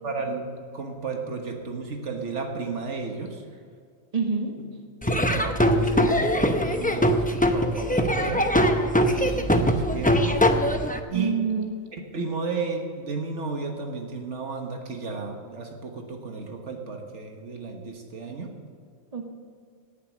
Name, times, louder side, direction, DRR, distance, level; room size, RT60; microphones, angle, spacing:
voice 1, 0.0-3.4 5.1-8.5 9.1-10.5 11.1-11.4 12.1-18.5, right 4 dB, 85° right, 3 dB, 1.7 m, -33 dB
voice 2, 4.1-4.5 9.1-9.2 11.1-11.7 19.1-19.2, right 5 dB, 30° right, 2 dB, 1.7 m, -26 dB
Laughter / Drum, 5.0-11.0, equal, 10° left, 0.6 m, -22 dB
18.0 x 7.4 x 6.3 m, 2.2 s
omnidirectional pair, 1.2 m